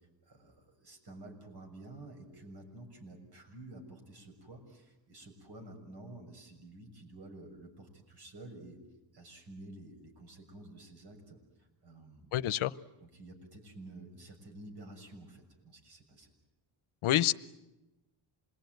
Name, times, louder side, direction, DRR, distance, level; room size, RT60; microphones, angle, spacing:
voice 1, 0.2-8.8 9.1-12.4 13.0-16.3, right 2 dB, 55° right, 4 dB, 6.7 m, -51 dB
voice 2, 12.3-12.7 17.0-17.3, left 13 dB, 80° left, 15 dB, 0.9 m, -27 dB
27.5 x 21.0 x 9.3 m, 0.99 s
cardioid pair, 100°, 48 cm